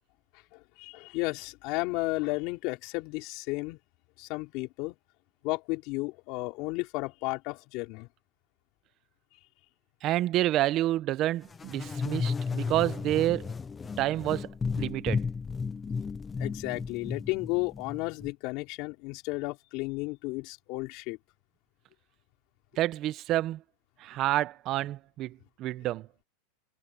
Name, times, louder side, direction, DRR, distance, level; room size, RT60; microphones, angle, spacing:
voice 1, 0.5-3.8 4.2-5.0 5.4-8.1 16.4-21.2, left 24 dB, 50° left, 4.4 m, -33 dB
voice 2, 10.0-13.5 14.0-14.5 14.8-15.2 22.8-23.6 24.0-26.1, right 14 dB, 35° right, 0.8 m, -29 dB
sound 1, 11.5-18.3, left 5 dB, 15° left, 0.7 m, -34 dB
supercardioid pair, 145°, 0 cm